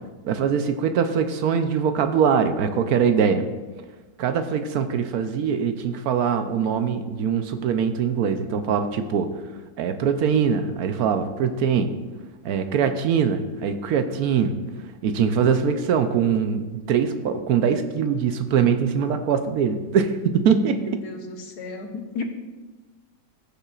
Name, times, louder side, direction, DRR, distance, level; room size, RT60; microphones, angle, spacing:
voice 1, 0.2-3.4 4.2-9.3 9.8-11.9 12.4-14.5 15.0-21.0, right 7 dB, 75° right, 8 dB, 1.1 m, -22 dB
voice 2, 20.7-22.2, left 4 dB, 90° left, 4 dB, 1.5 m, -34 dB
14.5 x 7.0 x 2.4 m, 1.2 s
omnidirectional pair, 1.7 m